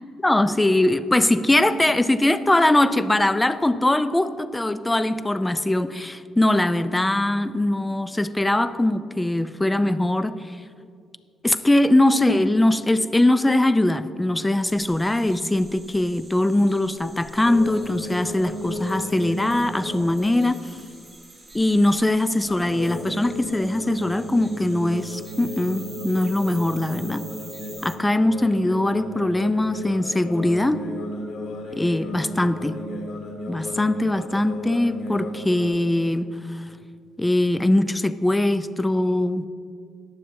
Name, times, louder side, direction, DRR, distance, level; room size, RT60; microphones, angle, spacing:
voice 1, 0.2-10.4 11.4-20.7 21.5-27.3 27.8-30.8 31.7-32.8 33.5-36.7 37.2-39.5, left 1 dB, 10° left, 12 dB, 0.5 m, -21 dB
sound 1, 14.6-28.0, right 3 dB, 25° right, 1.0 m, -47 dB
sound 2, 17.4-21.0 22.4-35.7, left 1 dB, 75° left, 1.8 m, -35 dB
21.0 x 7.1 x 2.7 m, 2.2 s
cardioid pair, 90°, 0 cm